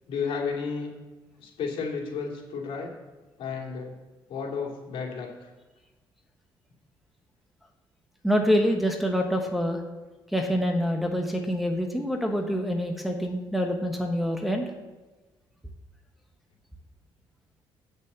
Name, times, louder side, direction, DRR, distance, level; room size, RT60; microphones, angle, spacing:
voice 1, 0.1-0.9 1.4-2.9 3.4-3.9 4.3-5.5, left 5 dB, 80° left, -1 dB, 2.8 m, -32 dB
voice 2, 8.2-9.8 10.3-14.6, equal, ahead, 1 dB, 1.1 m, -26 dB
8.3 x 7.0 x 8.1 m, 1.2 s
cardioid pair, 140°, 9 cm